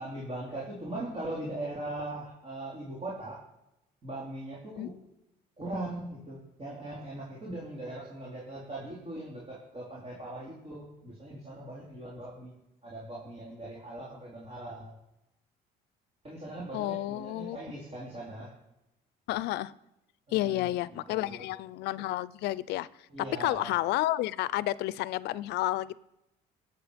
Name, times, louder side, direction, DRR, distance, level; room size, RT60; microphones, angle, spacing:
voice 1, 0.0-3.4 4.0-4.9 5.6-12.5 12.8-14.9 16.2-18.5 20.3-21.5 23.1-23.7, right 1 dB, 35° right, -6 dB, 4.0 m, -40 dB
voice 2, 16.7-17.6 19.3-19.7 20.3-22.9 23.4-26.0, left 16 dB, 85° left, 19 dB, 0.5 m, -31 dB
20.0 x 8.0 x 5.2 m, 0.89 s
cardioid pair, 110°, 17 cm